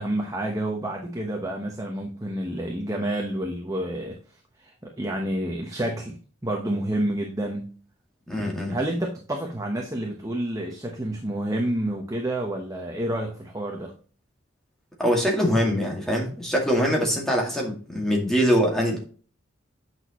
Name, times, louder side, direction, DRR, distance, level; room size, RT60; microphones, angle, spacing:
voice 1, 0.0-6.2 6.4-7.7 8.7-13.9, right 1 dB, 15° right, 1 dB, 1.0 m, -29 dB
voice 2, 8.3-8.8 15.0-19.0, equal, ahead, -1 dB, 2.1 m, -23 dB
8.8 x 6.2 x 3.0 m, 0.40 s
head